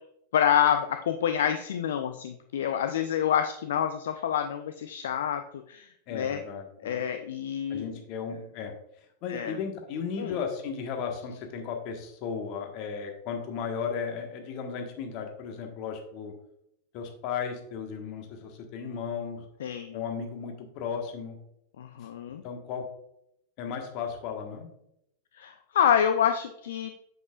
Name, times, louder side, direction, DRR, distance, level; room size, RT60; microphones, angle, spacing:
voice 1, 0.3-6.4 6.8-7.9 9.3-9.6 10.2-10.4 19.6-20.0 21.8-22.4 25.3-26.9, left 9 dB, 60° left, 8 dB, 0.4 m, -27 dB
voice 2, 6.1-7.0 7.7-8.7 9.2-16.3 16.9-19.4 19.9-21.4 22.0-22.1 22.4-22.8 23.6-24.7, left 6 dB, 40° left, 3 dB, 1.4 m, -35 dB
7.8 x 7.4 x 2.4 m, 0.78 s
figure-of-eight pair, 90°, 0 cm